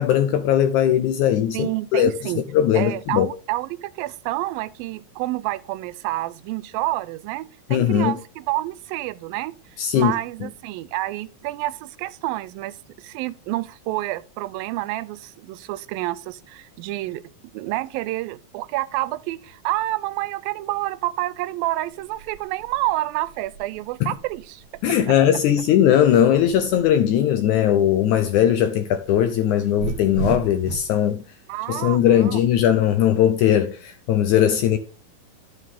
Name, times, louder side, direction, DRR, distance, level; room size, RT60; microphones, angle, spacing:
voice 1, 0.0-2.1 2.5-3.3 7.7-8.2 9.8-10.1 24.0-24.1 24.8-31.2 31.7-34.8, left 10 dB, 75° left, 1.8 m, -19 dB
voice 2, 1.5-2.4 2.7-9.6 9.9-17.2 17.5-24.6 25.1-25.2 31.5-32.4, right 17 dB, 90° right, 2.4 m, -28 dB
sound 1, 21.9-27.2 27.5-31.0, right 8 dB, 65° right, 1.5 m, -36 dB
11.0 x 6.7 x 3.6 m
omnidirectional pair, 4.0 m